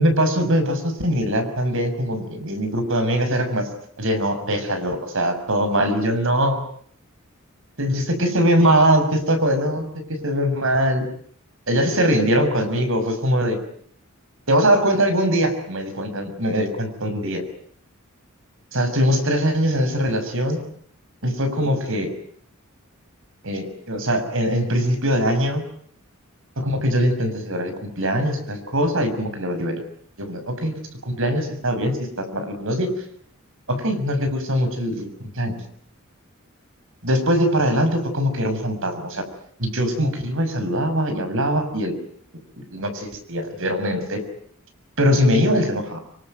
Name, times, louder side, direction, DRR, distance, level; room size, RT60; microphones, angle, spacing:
voice 1, 0.0-3.7 4.0-6.6 7.8-9.8 10.2-11.1 11.7-13.6 14.5-17.4 18.7-20.6 21.2-22.1 23.4-25.6 26.6-29.8 30.2-32.9 33.7-35.5 37.0-39.2 39.6-41.9 42.6-44.2 45.0-46.0, equal, 65° right, 7 dB, 6.5 m, -22 dB
25.5 x 24.5 x 9.2 m, 0.63 s
head